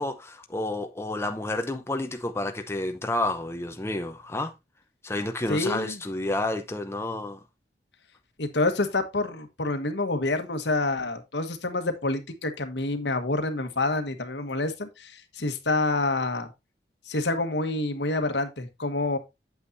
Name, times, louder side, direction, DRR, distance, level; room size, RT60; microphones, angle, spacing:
voice 1, 0.0-4.5 5.0-7.4, left 2 dB, 15° left, 0.7 m, -30 dB
voice 2, 5.5-6.0 8.4-16.5 17.0-19.2, left 2 dB, 80° left, 1.4 m, -27 dB
8.4 x 7.8 x 2.6 m
head